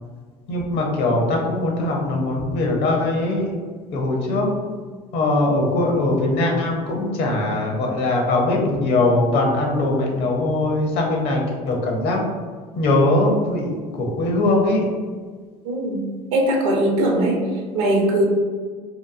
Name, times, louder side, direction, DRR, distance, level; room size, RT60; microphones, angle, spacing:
voice 1, 0.5-3.6 3.9-4.5 5.1-12.2 12.8-14.8, left 2 dB, 55° left, 0 dB, 0.7 m, -21 dB
voice 2, 15.6-16.0 16.3-17.4 17.7-18.2, right 1 dB, 65° right, 0 dB, 0.7 m, -20 dB
2.9 x 2.1 x 2.4 m, 1.5 s
hypercardioid pair, 70°, 21 cm